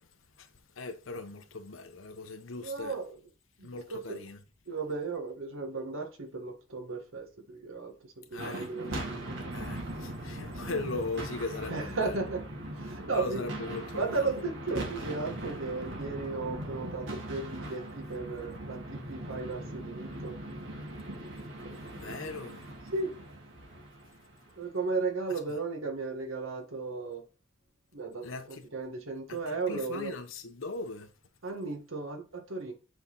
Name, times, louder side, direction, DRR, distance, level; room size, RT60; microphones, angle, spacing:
voice 1, 0.8-3.0 3.6-4.4 8.3-8.7 9.5-12.3 13.1-14.3 21.9-22.7 25.5-25.6 28.2-28.7 29.3-31.1, left 3 dB, 80° left, 1.0 m, -39 dB
voice 2, 2.6-3.1 3.6-4.2 4.7-9.4 11.7-12.4 12.7-13.4 14.0-20.4 22.9-23.1 24.6-27.2 27.9-30.1 31.4-32.7, right 3 dB, 90° right, 1.6 m, -35 dB
sound 1, 8.3-24.7, right 1 dB, 65° right, 2.0 m, -40 dB
8.0 x 4.0 x 4.1 m
head